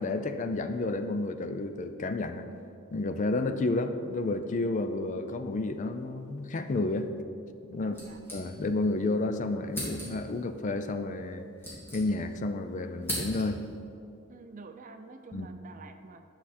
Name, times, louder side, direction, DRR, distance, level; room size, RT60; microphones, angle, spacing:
voice 1, 0.0-2.4 2.9-7.1 7.7-8.0 8.3-11.4 11.9-13.6 15.3-15.5, left 2 dB, 35° left, 9 dB, 0.4 m, -31 dB
voice 2, 7.7-8.2 14.3-16.3, right 3 dB, 35° right, 7 dB, 0.5 m, -48 dB
sound 1, 7.9-8.9 9.2-9.3 9.7-10.4 11.2-12.5 12.7-13.7, equal, 10° left, 2.2 m, -38 dB
9.9 x 6.0 x 4.2 m, 2.6 s
head